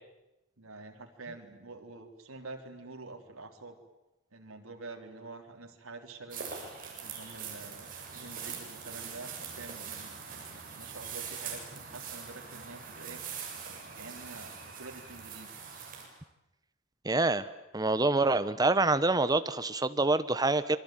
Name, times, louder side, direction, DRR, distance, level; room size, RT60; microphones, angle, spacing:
voice 1, 0.6-3.8 4.3-6.5 7.0-10.2 10.5-15.5, right 3 dB, 90° right, 4 dB, 3.6 m, -47 dB
sound 1, 6.3-16.1, right 6 dB, 40° right, 7.4 m, -42 dB
voice 2, 17.0-17.5 17.7-20.8, right 2 dB, 20° right, 13 dB, 1.1 m, -26 dB
27.0 x 23.5 x 9.2 m, 0.95 s
head